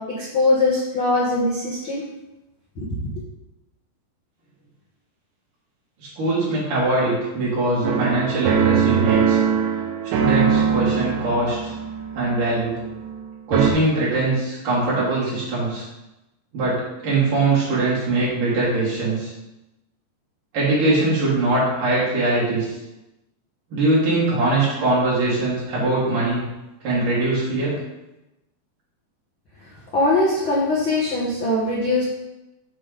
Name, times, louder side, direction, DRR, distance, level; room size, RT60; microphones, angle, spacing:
voice 1, 0.0-2.0 29.9-32.0, left 2 dB, 55° left, -8 dB, 1.4 m, -21 dB
voice 2, 6.0-9.4 10.2-11.7 12.1-12.8 13.5-15.9 16.5-19.3 20.5-22.7 23.7-26.4 26.8-27.7, right 2 dB, 60° right, -8 dB, 3.8 m, -22 dB
sound 1, 7.8-13.2 13.5-13.7, right 7 dB, 75° right, 2.1 m, -21 dB
7.6 x 3.6 x 5.0 m, 0.97 s
omnidirectional pair, 4.3 m